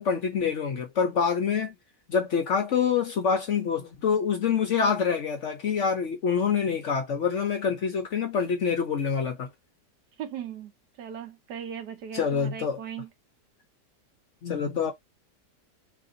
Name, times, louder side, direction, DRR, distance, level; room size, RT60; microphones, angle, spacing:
voice 1, 0.0-1.7 2.1-9.5 12.1-12.8 14.4-14.9, left 6 dB, 60° left, 0.8 m, -26 dB
voice 2, 10.2-10.7 11.0-13.1, right 9 dB, 70° right, 1.3 m, -38 dB
3.3 x 2.7 x 3.7 m
omnidirectional pair, 1.9 m